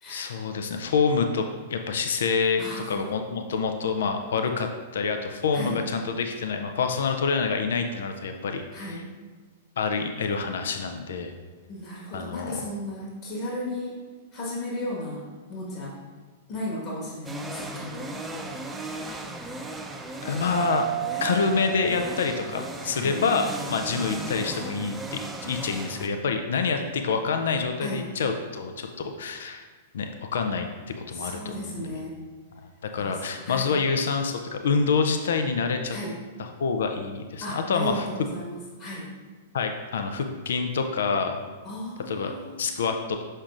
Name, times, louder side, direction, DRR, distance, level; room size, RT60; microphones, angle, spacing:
voice 1, 0.1-9.0 9.8-11.3 12.1-12.6 20.2-20.9 21.2-29.7 29.9-31.9 32.9-36.0 36.4-38.1 39.5-41.4 42.1-42.3 42.6-43.2, left 5 dB, 70° left, 6 dB, 0.5 m, -27 dB
voice 2, 2.6-3.1 5.5-5.8 8.7-9.1 11.7-14.0 14.3-15.2 15.5-16.0 16.5-18.5 21.1-21.3 22.9-23.2 27.8-28.0 31.1-32.2 33.0-33.7 35.9-36.1 37.4-39.1 41.6-42.8, left 1 dB, 45° left, -4 dB, 1.6 m, -35 dB
sound 1, 17.2-26.1, right 2 dB, 10° right, 0.6 m, -36 dB
Mallet percussion, 20.6-23.1, right 14 dB, 65° right, 0.5 m, -32 dB
6.3 x 6.0 x 2.6 m, 1.4 s
figure-of-eight pair, 105°, 0 cm